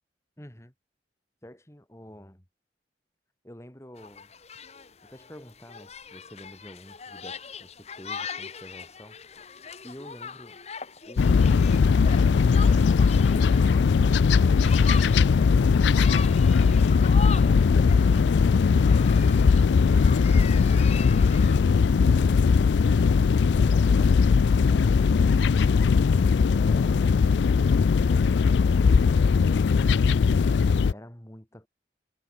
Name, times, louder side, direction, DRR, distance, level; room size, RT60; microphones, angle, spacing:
voice 1, 0.4-0.7 1.4-2.5 3.4-4.3 5.0-9.5 9.8-10.6 30.6-31.7, equal, 15° left, 3.4 m, -48 dB
sound 1, 4.0-21.6, left 6 dB, 35° left, 1.2 m, -40 dB
sound 2, 11.2-30.9, left 5 dB, 80° left, 0.4 m, -20 dB
head